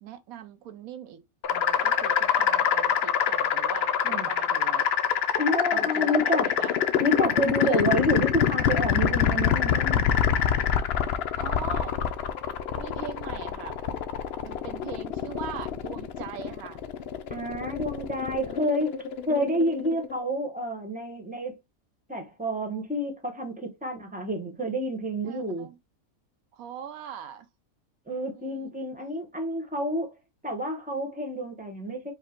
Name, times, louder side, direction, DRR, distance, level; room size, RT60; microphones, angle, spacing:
voice 1, 0.0-4.9 5.7-6.2 6.6-6.7 7.6-7.9 11.4-12.0 12.7-13.8 14.4-16.8 18.5-18.7 25.2-25.8 26.5-27.5 28.4-28.7, right 9 dB, 75° right, 1.0 m, -41 dB
sound 1, 1.4-20.2, left 8 dB, 65° left, 0.6 m, -26 dB
voice 2, 5.4-6.5 7.0-10.1 17.3-19.0 19.3-21.6 22.1-25.7 28.1-30.1 30.4-32.1, equal, 5° right, 0.9 m, -29 dB
4.9 x 2.2 x 4.3 m
omnidirectional pair, 1.5 m